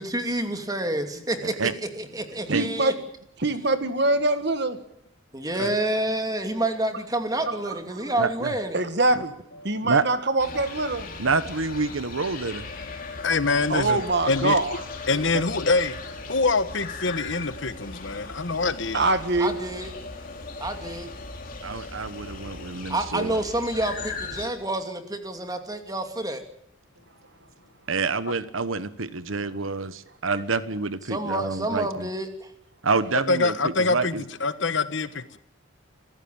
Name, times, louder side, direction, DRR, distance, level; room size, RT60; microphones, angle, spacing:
voice 1, 0.0-2.9 5.3-8.8 19.4-19.9 20.6-21.1 22.9-26.4 31.1-32.5, right 1 dB, 20° right, 6 dB, 2.7 m, -28 dB
voice 2, 1.4-1.7 2.5-2.6 8.2-8.5 9.8-10.0 11.2-12.7 15.3-15.4 21.6-23.4 27.9-32.1 32.8-34.2, right 4 dB, 85° right, 14 dB, 1.2 m, -27 dB
voice 3, 2.5-3.0 3.4-4.8 7.5-8.1 8.7-9.3 9.6-11.1 13.7-14.8 18.9-19.5, right 2 dB, 55° right, 10 dB, 1.9 m, -24 dB
sound 1, 10.4-24.5, left 3 dB, 45° left, 3.7 m, -38 dB
voice 4, 13.2-14.0 14.3-14.6 15.1-16.0 16.3-19.1 33.3-35.4, left 3 dB, 65° left, 13 dB, 1.3 m, -25 dB
26.5 x 15.0 x 8.8 m, 0.75 s
head